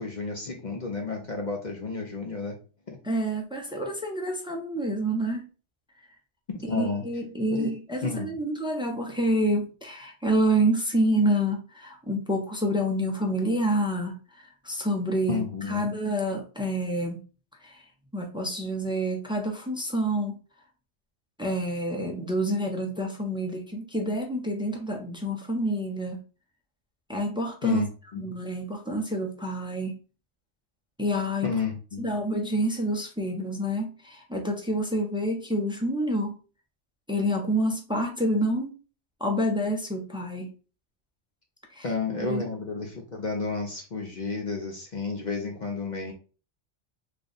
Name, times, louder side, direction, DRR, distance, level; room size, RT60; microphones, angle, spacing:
voice 1, 0.0-2.6 2.9-3.0 6.7-7.0 7.5-7.7 8.0-8.3 15.3-15.9 27.6-27.9 28.1-28.2 31.4-32.1 41.8-46.1, left 4 dB, 45° left, 1 dB, 0.7 m, -31 dB
voice 2, 3.0-5.4 6.6-17.2 17.6-17.8 18.1-20.4 21.4-26.2 27.1-27.8 28.2-29.9 31.0-31.5 32.0-36.3 37.1-38.7 39.2-40.5 41.7-41.9 42.2-42.5, right 1 dB, 5° right, 1 dB, 0.5 m, -28 dB
3.3 x 2.3 x 3.9 m, 0.35 s
omnidirectional pair, 1.2 m